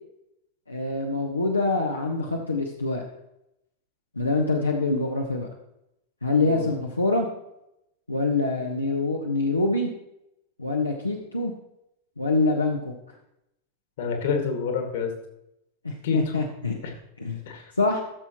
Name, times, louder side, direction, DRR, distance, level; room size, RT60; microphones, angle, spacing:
voice 1, 0.7-3.0 4.2-5.5 6.2-7.3 8.1-9.9 10.6-11.5 12.2-12.9 15.8-16.8 17.2-17.4 17.8-18.0, left 3 dB, 80° left, 0 dB, 1.0 m, -25 dB
voice 2, 14.0-15.1 16.0-16.3 16.8-16.9 17.5-17.6, left 5 dB, 55° left, 3 dB, 2.0 m, -27 dB
14.5 x 7.0 x 3.0 m, 0.84 s
figure-of-eight pair, 90°, 0 cm